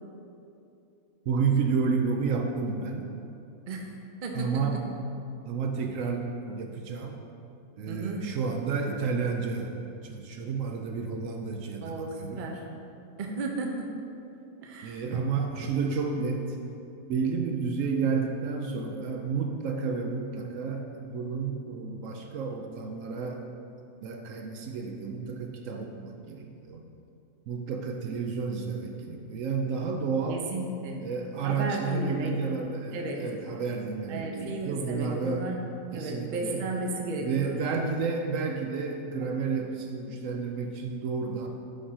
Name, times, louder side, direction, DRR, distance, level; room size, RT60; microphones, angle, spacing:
voice 1, 1.3-3.1 4.3-4.8 5.4-7.2 7.8-9.7 10.0-12.4 14.8-16.6 17.1-23.4 24.0-26.8 27.5-30.5 31.0-35.4 35.9-36.7 37.2-41.5, right 5 dB, 70° right, 3 dB, 0.9 m, -31 dB
voice 2, 4.2-4.6 7.9-8.3 11.8-12.6 13.2-13.9 14.6-15.0 30.3-31.0 31.4-32.3 32.9-33.2 34.1-35.6 35.9-37.6, right 3 dB, 45° right, 1 dB, 0.7 m, -34 dB
5.3 x 4.8 x 5.6 m, 2.7 s
omnidirectional pair, 1.5 m